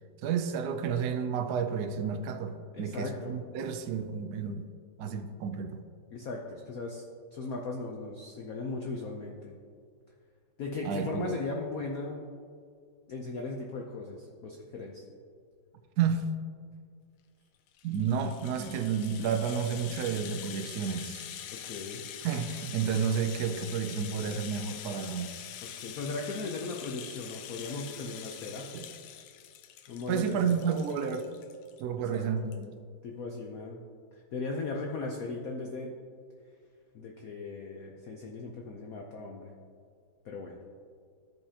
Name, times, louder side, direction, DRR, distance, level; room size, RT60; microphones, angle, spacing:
voice 1, 0.2-4.7 5.0-5.8 10.8-11.3 16.0-16.3 17.8-21.3 22.2-25.3 28.7-28.9 30.1-31.3 31.8-32.7, right 7 dB, 75° right, 7 dB, 0.9 m, -31 dB
voice 2, 2.7-3.3 6.1-7.0 7.3-9.6 10.6-12.3 13.1-15.0 21.5-22.0 25.8-28.7 29.9-30.6 32.1-32.3 33.0-33.8 34.3-35.9 36.9-39.5 40.2-40.6, left 3 dB, 65° left, 0 dB, 0.9 m, -37 dB
Rattle (instrument), 17.7-31.8 32.1-32.2 32.5-32.6, left 10 dB, 80° left, 1.4 m, -44 dB
13.5 x 5.3 x 2.8 m, 2.1 s
omnidirectional pair, 2.3 m